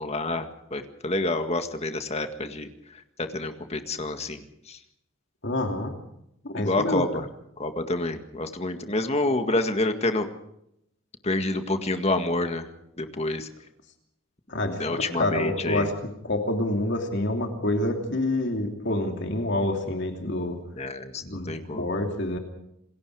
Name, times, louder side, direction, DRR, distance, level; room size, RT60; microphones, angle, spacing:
voice 1, 0.0-4.8 6.6-7.3 7.6-10.3 11.2-12.7 13.0-13.5 14.8-15.9 20.7-21.9, left 2 dB, 30° left, 7 dB, 1.8 m, -28 dB
voice 2, 5.4-5.9 6.4-7.0 14.5-15.9 16.2-20.6 21.2-22.4, left 1 dB, 55° left, 4 dB, 2.9 m, -27 dB
28.0 x 21.0 x 4.9 m, 0.78 s
head